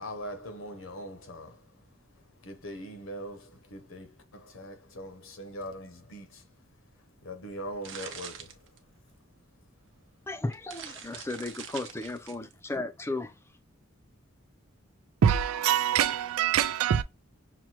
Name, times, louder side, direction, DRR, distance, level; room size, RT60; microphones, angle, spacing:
voice 1, 0.0-1.7 2.4-6.4 7.2-8.6, equal, 65° left, 0.9 m, -41 dB
sound 1, 7.4-9.2 10.0-10.1 10.4-12.5, right 8 dB, 60° right, 0.7 m, -44 dB
voice 2, 10.3-13.3, left 2 dB, 10° left, 0.4 m, -35 dB
voice 3, 15.2-17.0, right 9 dB, 85° right, 0.3 m, -24 dB
5.9 x 2.2 x 2.8 m
head